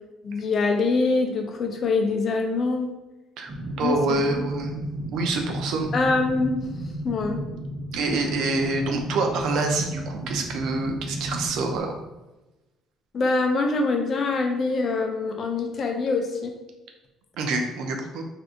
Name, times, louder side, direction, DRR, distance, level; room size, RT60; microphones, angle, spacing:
voice 1, 0.2-2.9 3.8-4.5 5.9-6.6 7.0-7.4 13.1-16.5, left 3 dB, 40° left, 3 dB, 0.5 m, -24 dB
voice 2, 3.4-4.8 5.1-5.9 7.9-11.9 17.4-18.3, right 3 dB, 70° right, 3 dB, 0.5 m, -26 dB
sound 1, 3.5-11.8, right 1 dB, 35° right, 0.8 m, -33 dB
2.6 x 2.5 x 3.6 m, 1.0 s
cardioid pair, 130°, 0 cm